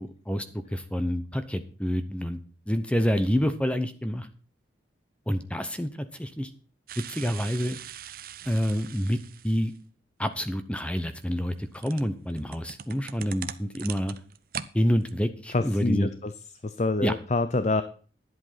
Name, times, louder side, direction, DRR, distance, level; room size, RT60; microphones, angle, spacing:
voice 1, 0.0-2.4 2.7-4.3 5.3-6.5 7.1-7.8 8.4-9.2 9.4-9.7 10.2-14.2 14.7-16.1 17.0-17.1, equal, 5° left, 10 dB, 0.8 m, -28 dB
sound 1, 6.9-9.8 10.8-14.7 15.0-15.1, right 8 dB, 50° right, 0.7 m, -41 dB
voice 2, 15.5-16.3 16.6-17.8, left 2 dB, 35° left, 11 dB, 0.6 m, -26 dB
11.0 x 7.9 x 5.7 m, 0.40 s
head